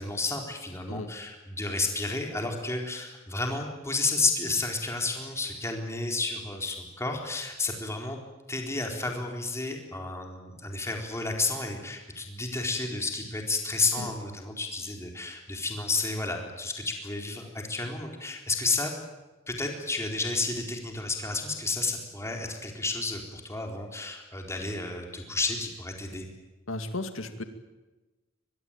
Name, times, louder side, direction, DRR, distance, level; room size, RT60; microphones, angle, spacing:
voice 1, 0.0-8.2 8.5-18.9 19.5-26.3, left 3 dB, 15° left, 2 dB, 4.2 m, -31 dB
voice 2, 26.7-27.4, left 2 dB, 85° left, 8 dB, 2.4 m, -35 dB
23.5 x 22.0 x 9.1 m, 1.1 s
head